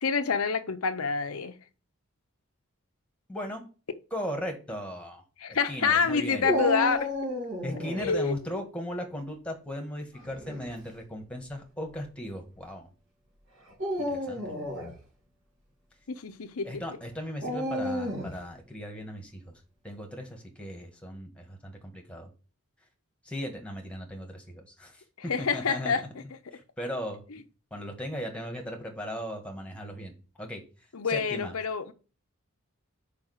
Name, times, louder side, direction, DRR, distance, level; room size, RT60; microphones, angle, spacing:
voice 1, 0.0-1.6 5.4-7.1 8.0-8.4 16.1-16.8 25.3-26.0 30.9-31.9, left 5 dB, 80° left, 0.7 m, -27 dB
voice 2, 3.3-3.6 4.1-5.2 5.5-6.5 7.6-12.9 14.0-14.5 16.6-19.5 19.8-22.3 23.2-25.0 25.4-25.9 26.5-27.2 27.7-30.1 30.4-30.6 31.1-31.5, equal, 5° left, 1.5 m, -37 dB
Dog, 6.4-8.1 10.2-10.7 11.5-11.6 13.7-14.9 17.4-18.4, equal, 60° right, 3.0 m, -31 dB
5.1 x 4.9 x 6.3 m
head